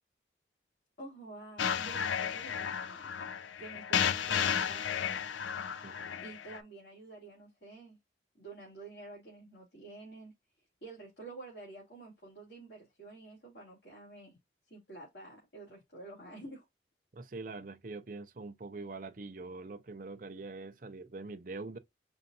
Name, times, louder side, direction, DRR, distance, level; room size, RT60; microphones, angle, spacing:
voice 1, 1.0-3.3 3.6-5.0 6.2-8.0 8.3-10.3 10.8-14.3 14.7-16.6, right 2 dB, 65° left, 2.5 m, -49 dB
sound 1, 1.6-6.6, left 8 dB, 85° left, 0.5 m, -33 dB
voice 2, 5.8-6.1 17.1-21.8, right 3 dB, 45° right, 0.5 m, -44 dB
5.3 x 2.4 x 2.7 m
head